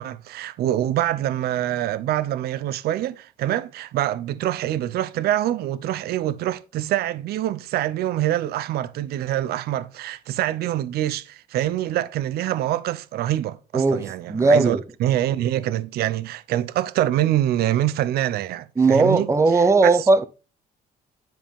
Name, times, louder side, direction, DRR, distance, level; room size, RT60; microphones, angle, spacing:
voice 1, 0.0-20.1, right 13 dB, 70° right, 0.6 m, -25 dB
voice 2, 13.7-14.8 18.8-20.2, right 3 dB, 15° right, 0.8 m, -18 dB
10.5 x 5.0 x 3.5 m
cardioid pair, 110°, 17 cm